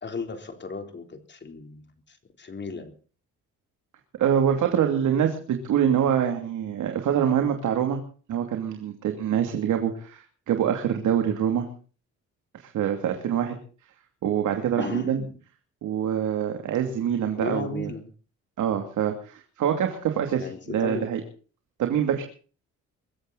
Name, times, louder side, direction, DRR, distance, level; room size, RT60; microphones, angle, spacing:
voice 1, 0.0-2.9 14.8-15.4 17.4-18.1 20.4-21.1, left 4 dB, 35° left, 6 dB, 3.7 m, -35 dB
voice 2, 4.2-8.0 8.3-11.7 12.5-13.6 14.2-15.2 15.8-17.9 18.6-21.2 21.8-22.2, right 9 dB, 75° right, 4 dB, 2.8 m, -25 dB
23.5 x 14.0 x 4.1 m, 0.40 s
cardioid pair, 90°, 30 cm